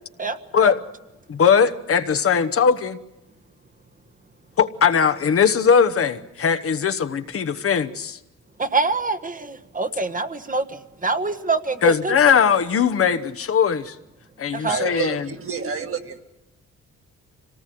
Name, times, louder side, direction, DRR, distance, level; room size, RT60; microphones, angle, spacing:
voice 1, 0.2-0.7 8.6-12.1 14.5-14.8, right 4 dB, 25° right, 9 dB, 1.3 m, -25 dB
voice 2, 1.3-3.0 4.6-8.2 11.8-13.9 14.4-15.3, left 6 dB, 50° left, 9 dB, 1.1 m, -19 dB
voice 3, 14.7-16.2, right 6 dB, 45° right, 4 dB, 2.2 m, -29 dB
25.5 x 18.5 x 7.6 m, 0.95 s
cardioid pair, 75°, 30 cm